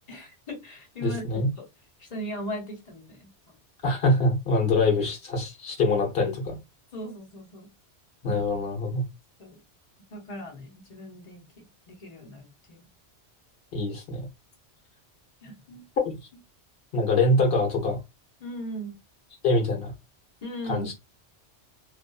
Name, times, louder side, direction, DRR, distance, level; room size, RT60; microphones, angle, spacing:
voice 1, 0.1-1.3 1.5-1.6 2.0-3.3 4.5-4.6 6.9-7.7 8.2-8.4 9.4-9.6 10.1-12.9 15.4-15.9 18.4-19.0 20.4-20.9, equal, 40° left, 0.8 m, -38 dB
voice 2, 1.0-1.5 3.8-6.6 8.2-9.0 13.7-14.3 16.0-16.2 16.9-18.0 19.4-19.9 20.7-20.9, left 2 dB, 60° left, 1.1 m, -24 dB
2.6 x 2.4 x 2.2 m
omnidirectional pair, 1.2 m